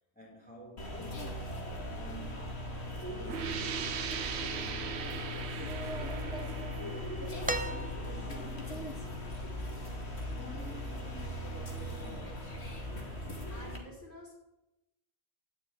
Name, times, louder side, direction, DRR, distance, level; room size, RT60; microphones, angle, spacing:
voice 1, 0.2-6.2 6.8-9.2 10.3-12.6, right 1 dB, 10° left, 2.3 m, -52 dB
sound 1, 0.8-13.8, left 1 dB, 85° left, 2.5 m, -39 dB
sound 2, 3.3-8.8, right 7 dB, 85° right, 1.0 m, -40 dB
sound 3, 7.5-8.5 10.0-10.1, right 2 dB, 15° right, 0.4 m, -36 dB
voice 2, 12.9-14.4, left 1 dB, 55° left, 3.9 m, -51 dB
13.0 x 6.2 x 9.2 m
omnidirectional pair, 1.1 m